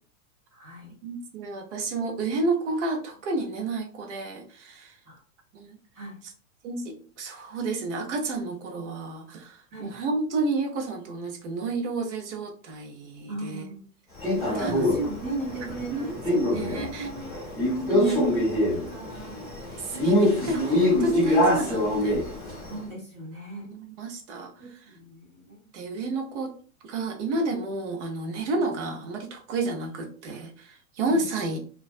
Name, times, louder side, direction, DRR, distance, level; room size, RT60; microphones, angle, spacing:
voice 1, 0.5-0.9 5.1-5.2 5.9-6.2 9.7-10.0 13.3-13.8 14.3-17.3 17.9-18.4 18.7-19.4 19.9-20.3 22.7-23.7 24.6-25.6 31.1-31.3, right 3 dB, 20° right, -2 dB, 0.4 m, -37 dB
voice 2, 1.0-5.0 5.5-5.8 6.6-13.7 14.5-14.9 15.6-17.1 17.8-18.2 19.7-22.2 23.6-24.5 25.7-26.5 26.8-31.6, right 2 dB, 55° right, 3 dB, 0.8 m, -30 dB
Male speech man speaking, 14.2-22.7, left 1 dB, ahead, 0.9 m, -25 dB
2.4 x 2.2 x 2.4 m, 0.42 s
hypercardioid pair, 150°, 43 cm